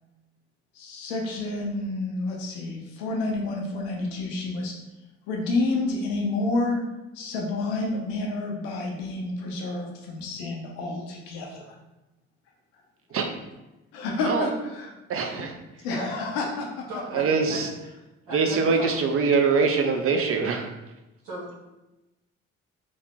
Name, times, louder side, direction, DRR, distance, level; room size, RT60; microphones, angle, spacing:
voice 1, 0.7-4.7 5.3-6.8 7.1-11.7 13.1-13.2 13.9-14.9 15.8-16.9 17.2-17.3, left 2 dB, 85° left, 0 dB, 0.6 m, -29 dB
voice 2, 15.1-15.5 17.1-17.7 18.3-20.7, right 5 dB, 45° right, 4 dB, 0.5 m, -23 dB
voice 3, 16.9-18.0 18.3-19.0 21.2-21.7, equal, 90° right, -8 dB, 0.8 m, -37 dB
3.1 x 2.0 x 3.0 m, 1.0 s
hypercardioid pair, 55°, 31 cm